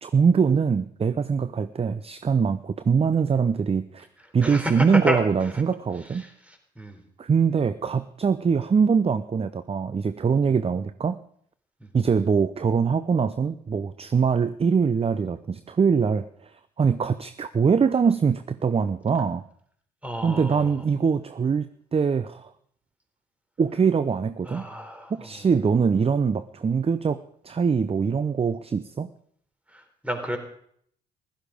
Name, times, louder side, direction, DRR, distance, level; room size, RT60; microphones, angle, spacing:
voice 1, 0.0-4.1 4.3-6.2 7.2-11.2 11.9-16.5 16.8-19.4 20.2-21.6 21.9-22.5 23.6-24.7 25.1-27.2 27.4-29.1, right 6 dB, 30° right, 13 dB, 0.7 m, -23 dB
voice 2, 4.4-5.2 6.8-7.0 20.0-20.6 24.5-25.1 30.0-30.4, equal, 5° right, 5 dB, 3.9 m, -29 dB
15.5 x 13.0 x 5.1 m, 0.64 s
hypercardioid pair, 50°, 20 cm